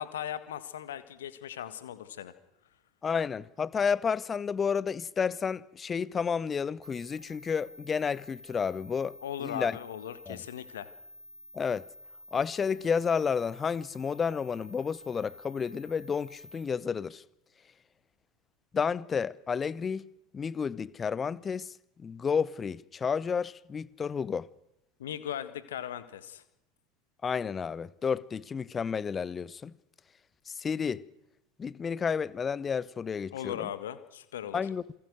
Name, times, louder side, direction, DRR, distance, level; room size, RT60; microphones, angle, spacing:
voice 1, 0.0-2.3 9.2-10.9 25.0-26.4 33.3-34.6, left 10 dB, 65° left, 1.7 m, -38 dB
voice 2, 3.0-9.7 10.3-10.4 11.5-11.8 12.3-17.2 18.7-20.1 20.3-24.5 27.2-29.7 30.5-31.0 31.6-33.7 34.5-34.8, left 6 dB, 25° left, 0.8 m, -31 dB
sound 1, 6.8-16.6, equal, 80° right, 2.7 m, -51 dB
28.0 x 20.0 x 6.4 m
figure-of-eight pair, 75°, 0 cm